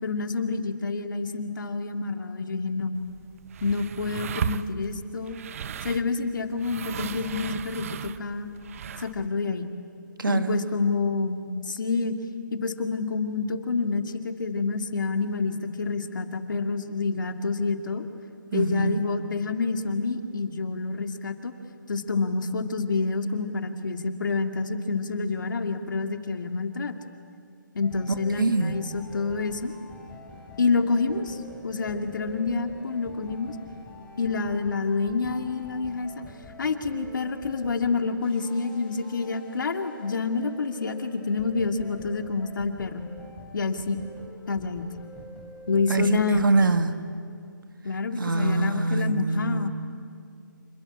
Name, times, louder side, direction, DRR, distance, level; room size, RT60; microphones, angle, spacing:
voice 1, 0.0-2.9 3.6-5.4 5.8-8.5 9.0-9.7 10.3-12.2 12.5-18.0 18.5-21.5 21.9-27.0 27.7-29.7 30.6-31.4 31.6-33.6 34.2-36.3 36.6-43.1 43.5-44.0 44.5-44.9 45.7-46.5 47.8-49.7, left 4 dB, 70° left, 6 dB, 2.5 m, -28 dB
sound 1, 3.0-9.3, right 8 dB, 40° right, 0.8 m, -36 dB
voice 2, 10.2-10.6 18.5-19.0 28.4-28.8 45.9-47.1 48.2-49.7, right 3 dB, 80° right, 9 dB, 1.8 m, -24 dB
sound 2, 27.8-46.7, left 2 dB, 10° left, 3.8 m, -46 dB
27.0 x 25.0 x 8.7 m, 2.3 s
figure-of-eight pair, 150°, 11 cm